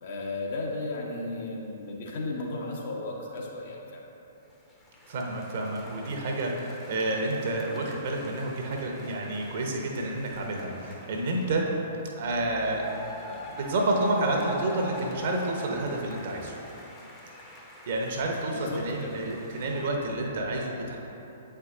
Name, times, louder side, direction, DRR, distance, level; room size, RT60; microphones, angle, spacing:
voice 1, 0.0-4.0 18.5-19.2, left 2 dB, 50° left, -2 dB, 0.9 m, -34 dB
sound 1, 4.5-11.8 12.5-19.9, left 1 dB, 10° left, 0.7 m, -45 dB
voice 2, 5.1-11.6 12.2-12.9 13.2-16.5 17.9-21.0, right 2 dB, 50° right, 0 dB, 0.8 m, -29 dB
8.2 x 4.5 x 2.5 m, 3.0 s
figure-of-eight pair, 115°, 0 cm